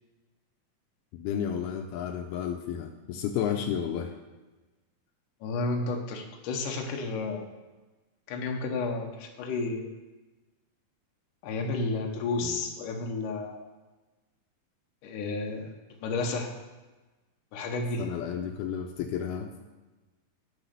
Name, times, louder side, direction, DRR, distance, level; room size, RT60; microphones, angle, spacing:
voice 1, 1.1-4.1 12.4-12.6 18.0-19.6, left 8 dB, 85° left, 4 dB, 2.6 m, -32 dB
voice 2, 5.4-7.4 8.3-9.9 11.4-13.6 15.0-15.7 16.0-16.5 17.5-18.1, left 3 dB, 65° left, 2 dB, 2.5 m, -31 dB
13.5 x 4.9 x 6.7 m, 1.2 s
omnidirectional pair, 4.5 m